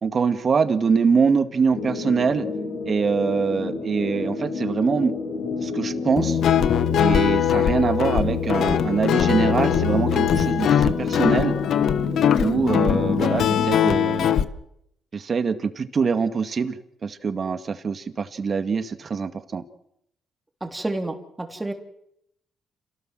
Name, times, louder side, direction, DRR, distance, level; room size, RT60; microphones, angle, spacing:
voice 1, 0.0-2.5 2.9-5.1 5.6-6.4 7.0-11.5 12.4-14.5 15.1-19.6, right 5 dB, 45° right, 10 dB, 2.0 m, -24 dB
sound 1, 1.7-13.7, left 4 dB, 85° left, 8.0 m, -29 dB
Guitar, 6.2-14.4, left 9 dB, 70° left, 1.2 m, -21 dB
voice 2, 20.6-21.7, right 2 dB, 15° right, 5 dB, 3.7 m, -30 dB
28.5 x 18.0 x 7.8 m, 0.78 s
cardioid pair, 90°, 0 cm